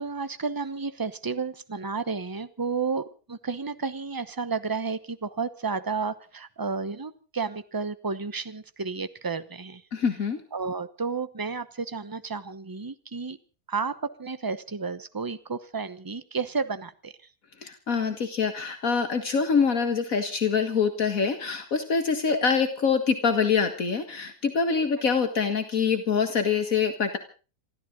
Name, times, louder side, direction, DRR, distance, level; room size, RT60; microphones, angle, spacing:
voice 1, 0.0-9.8 10.5-13.4 13.7-17.1, right 4 dB, 15° right, 13 dB, 0.8 m, -32 dB
voice 2, 9.9-10.4 17.6-27.2, left 5 dB, 65° left, 7 dB, 2.0 m, -25 dB
27.0 x 13.5 x 3.8 m, 0.36 s
omnidirectional pair, 1.5 m